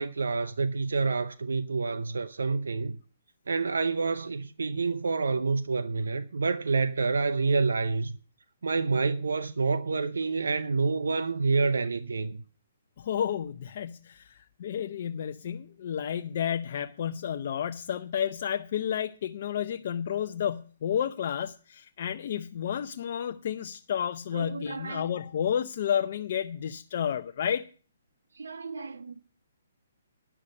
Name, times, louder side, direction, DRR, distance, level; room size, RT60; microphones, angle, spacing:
voice 1, 0.0-3.0 3.5-8.2 8.6-12.4 24.3-25.1 28.4-29.1, right 4 dB, 85° right, 0.7 m, -28 dB
voice 2, 13.0-27.7 28.7-28.9, left 9 dB, 50° left, 0.6 m, -31 dB
9.9 x 6.7 x 8.7 m
hypercardioid pair, 155°, 0 cm